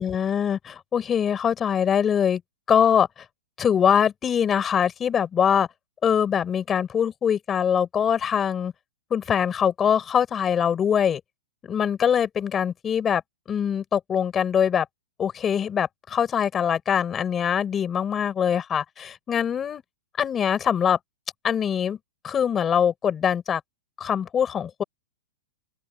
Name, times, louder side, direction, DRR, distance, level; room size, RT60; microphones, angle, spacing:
voice 1, 0.0-2.4 2.7-3.1 3.6-5.7 6.0-8.7 9.1-11.2 11.6-13.2 13.5-14.9 15.2-19.8 20.2-21.0 21.4-22.0 22.2-23.6 24.0-24.8, left 8 dB, 15° left, 6.1 m, -23 dB
open air
hypercardioid pair, 175°, 0 cm